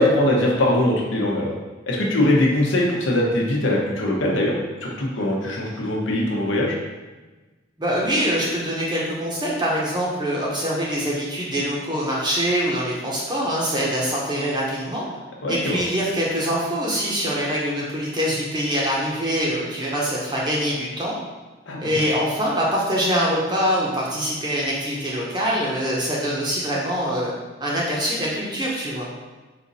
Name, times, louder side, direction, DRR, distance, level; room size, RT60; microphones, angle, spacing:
voice 1, 0.0-1.5 1.9-4.5 4.8-6.7 15.4-15.8 21.7-22.0, left 1 dB, 80° left, -2 dB, 0.9 m, -21 dB
voice 2, 7.8-15.0 15.5-21.1 21.8-27.3 27.6-29.1, equal, 20° right, -4 dB, 0.7 m, -24 dB
4.2 x 2.6 x 4.0 m, 1.2 s
head